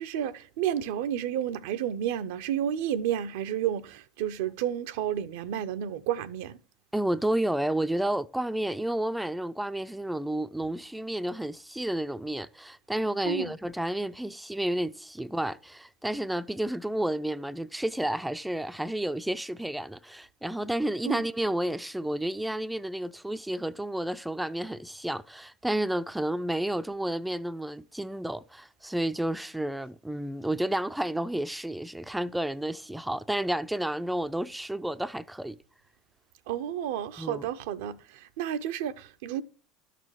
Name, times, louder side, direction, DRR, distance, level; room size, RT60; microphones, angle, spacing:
voice 1, 0.0-6.6 13.3-13.5 21.0-21.2 36.5-39.4, right 10 dB, 70° right, 0.6 m, -31 dB
voice 2, 6.9-35.6 37.2-37.5, right 1 dB, 5° right, 0.4 m, -31 dB
12.0 x 6.7 x 4.6 m
hypercardioid pair, 75°, 0 cm